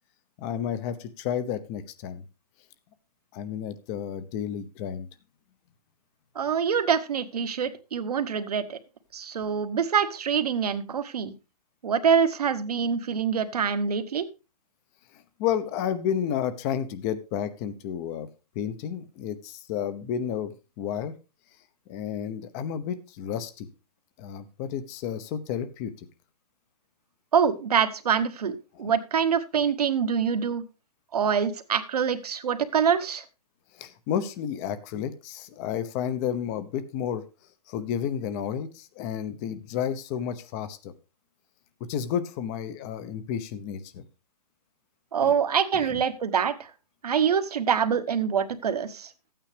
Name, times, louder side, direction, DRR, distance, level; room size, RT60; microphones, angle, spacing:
voice 1, 0.4-2.2 3.3-5.1 15.1-18.3 18.5-20.5 20.8-21.1 21.9-23.7 24.2-25.9 28.7-28.9 33.7-37.2 37.7-40.9 41.9-44.0 45.2-45.3 45.7-46.0, left 9 dB, 25° left, 13 dB, 0.8 m, -31 dB
voice 2, 6.3-8.8 9.1-11.3 11.8-14.3 27.3-30.6 31.1-33.2 45.1-46.7 47.0-49.1, right 7 dB, 70° right, 10 dB, 1.3 m, -25 dB
13.0 x 9.0 x 3.3 m, 0.30 s
hypercardioid pair, 150°, 20 cm